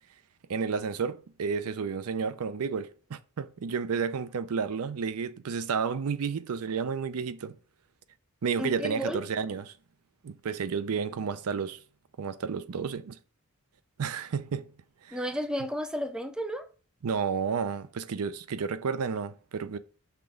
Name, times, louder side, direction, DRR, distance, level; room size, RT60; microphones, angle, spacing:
voice 1, 0.5-7.5 8.4-9.7 10.2-11.8 12.2-13.2 14.0-14.6 15.0-15.2 17.0-19.8, right 6 dB, 75° right, 0.5 m, -31 dB
voice 2, 8.6-9.2 15.1-16.7, equal, 5° right, 0.5 m, -32 dB
5.9 x 3.4 x 4.9 m
head